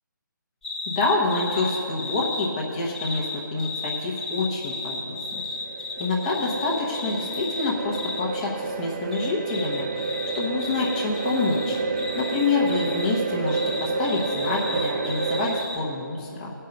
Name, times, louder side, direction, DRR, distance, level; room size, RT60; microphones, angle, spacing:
sound 1, 0.6-2.5 2.9-8.2 9.1-13.1 13.5-15.8, left 3 dB, 5° left, 0.8 m, -34 dB
voice 1, 0.9-5.4 6.0-10.0 10.3-11.8 12.1-16.5, left 3 dB, 20° left, -3 dB, 1.1 m, -27 dB
sound 2, 4.9-15.6, right 4 dB, 30° right, 0.4 m, -30 dB
16.5 x 5.6 x 6.5 m, 2.5 s
figure-of-eight pair, 150°, 11 cm